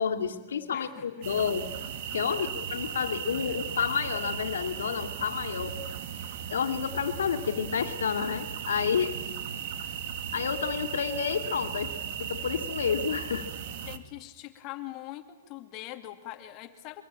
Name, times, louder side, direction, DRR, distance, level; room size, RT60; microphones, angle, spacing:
voice 1, 0.0-1.7 2.1-5.8 6.5-9.2 10.3-11.9 12.3-13.5, left 7 dB, 85° left, 8 dB, 2.4 m, -30 dB
voice 2, 0.7-1.3 2.4-2.5 3.4-3.6 9.8-9.9 13.9-17.0, left 15 dB, 35° left, 8 dB, 2.4 m, -43 dB
sound 1, 1.2-14.0, right 8 dB, 55° right, 2.2 m, -37 dB
25.0 x 21.5 x 8.9 m, 1.2 s
hypercardioid pair, 145°, 0 cm